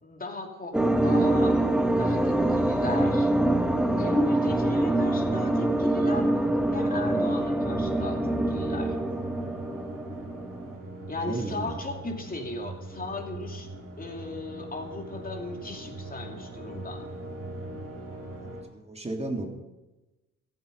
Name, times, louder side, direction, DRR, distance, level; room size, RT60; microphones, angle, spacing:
voice 1, 0.0-1.6 1.9-3.3 4.0-6.3 6.7-9.0 11.1-13.7 14.0-17.0, left 2 dB, 30° left, 2 dB, 2.7 m, -37 dB
sound 1, 0.7-10.7, right 1 dB, 5° right, 1.1 m, -25 dB
sound 2, 1.7-18.6, right 1 dB, 50° right, 5.7 m, -41 dB
voice 2, 11.3-11.8 18.4-19.5, right 2 dB, 20° right, 3 dB, 2.6 m, -34 dB
23.5 x 8.2 x 5.3 m, 1.0 s
cardioid pair, 90°, 30 cm